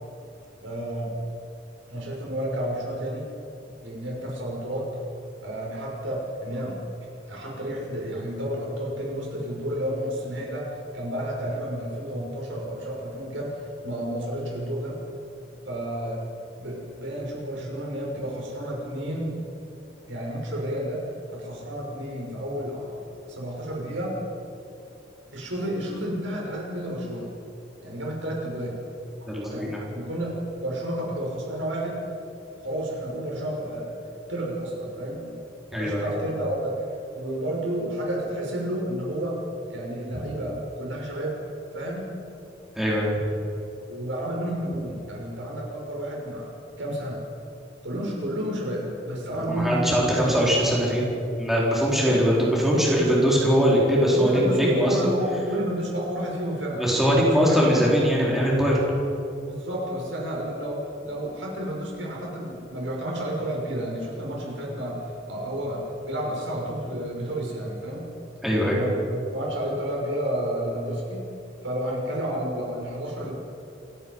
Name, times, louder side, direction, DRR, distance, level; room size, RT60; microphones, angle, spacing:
voice 1, 0.6-1.1 1.9-3.2 3.8-4.9 5.4-6.8 7.3-15.0 15.7-16.2 16.6-19.4 20.1-23.0 23.3-24.2 25.3-27.3 27.8-28.8 29.5-32.1 32.6-34.0 34.3-35.3 35.7-39.4 39.7-41.4 41.7-42.1 43.9-46.5 46.8-47.2 47.8-50.5 52.0-52.2 54.1-57.7 59.5-68.1 68.7-71.2 71.6-73.3, right 1 dB, 75° right, -2 dB, 6.1 m, -31 dB
voice 2, 29.3-29.8 35.7-36.1 40.1-40.2 42.8-43.2 49.5-51.0 51.4-55.0 56.8-58.8 68.4-68.8, equal, ahead, -5 dB, 4.3 m, -21 dB
28.0 x 17.0 x 5.5 m, 2.8 s
head